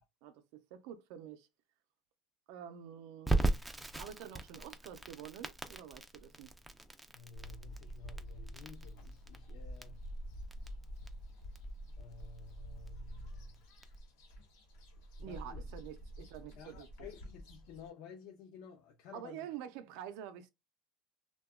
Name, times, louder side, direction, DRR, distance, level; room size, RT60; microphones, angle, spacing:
voice 1, 0.2-1.5 2.5-3.3 4.0-6.5 15.2-16.9 19.1-20.5, right 9 dB, 70° right, 0.4 m, -47 dB
Crackle, 3.3-14.0, right 2 dB, 5° right, 0.3 m, -39 dB
voice 2, 7.1-10.0 12.0-13.6 15.2-15.6 16.6-19.5, left 6 dB, 65° left, 0.5 m, -53 dB
sound 1, 7.3-17.9, equal, 85° left, 1.0 m, -48 dB
2.8 x 2.2 x 2.3 m
cardioid pair, 145°, 0 cm